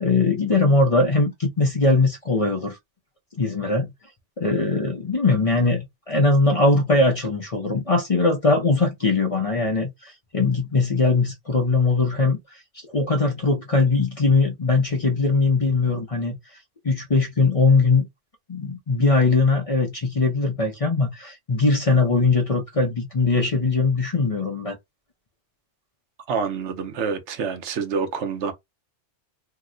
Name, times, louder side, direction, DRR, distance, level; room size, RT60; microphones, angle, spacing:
voice 1, 0.0-2.8 3.4-3.9 4.4-12.6 12.9-16.4 16.8-18.1 18.5-24.8, left 3 dB, 40° left, 0.6 m, -21 dB
voice 2, 26.3-28.5, right 5 dB, 75° right, 1.0 m, -27 dB
2.8 x 2.1 x 3.6 m
omnidirectional pair, 1.2 m